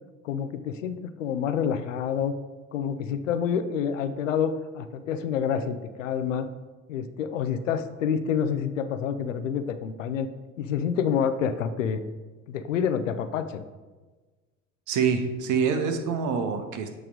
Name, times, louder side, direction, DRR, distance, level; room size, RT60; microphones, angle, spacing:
voice 1, 0.2-2.3 2.7-6.5 6.9-10.3 10.6-12.0 12.5-13.6, left 7 dB, 85° left, 11 dB, 0.5 m, -28 dB
voice 2, 14.9-16.9, right 6 dB, 50° right, 7 dB, 1.0 m, -26 dB
8.0 x 3.2 x 5.1 m, 1.3 s
figure-of-eight pair, 60°, 37 cm